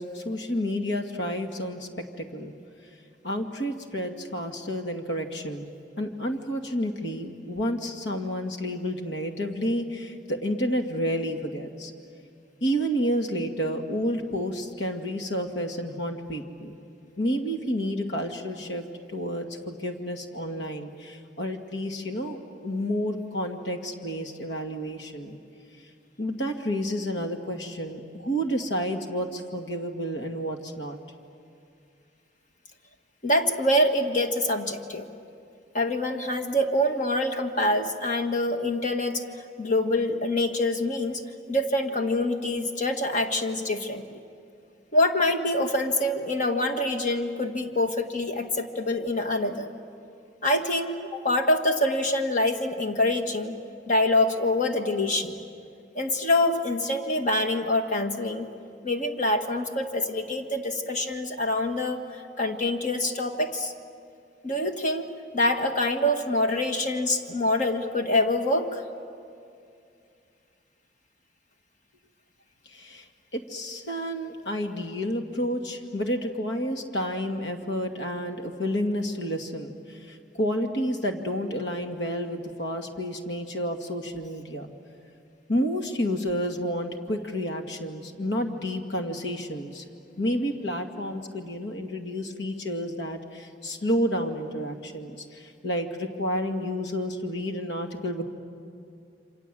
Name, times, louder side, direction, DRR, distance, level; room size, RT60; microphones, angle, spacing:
voice 1, 0.0-1.9 2.2-2.5 3.2-5.7 6.0-11.9 12.6-16.8 17.2-18.8 19.1-25.4 26.2-31.0 72.7-73.1 73.3-84.7 85.5-89.8 90.2-98.2, equal, 75° left, 4 dB, 2.2 m, -30 dB
voice 2, 33.2-35.1 35.7-39.2 39.6-41.2 41.5-44.2 44.9-49.7 50.4-53.6 53.9-55.4 55.9-58.5 58.8-63.7 64.4-68.8, left 1 dB, 45° left, 5 dB, 1.8 m, -25 dB
28.5 x 26.0 x 7.7 m, 2.4 s
head